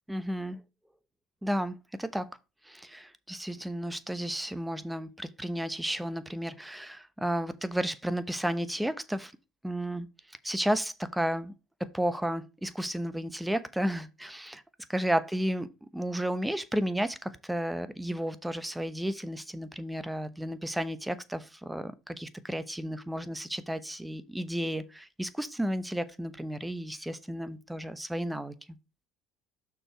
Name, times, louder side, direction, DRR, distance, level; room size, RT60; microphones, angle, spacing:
voice 1, 0.1-0.6 1.4-2.3 2.6-9.3 9.6-11.5 11.8-14.6 14.9-15.7 15.9-28.5, equal, 5° right, 0.9 m, -33 dB
6.2 x 4.8 x 4.5 m
supercardioid pair, 90°, 0 cm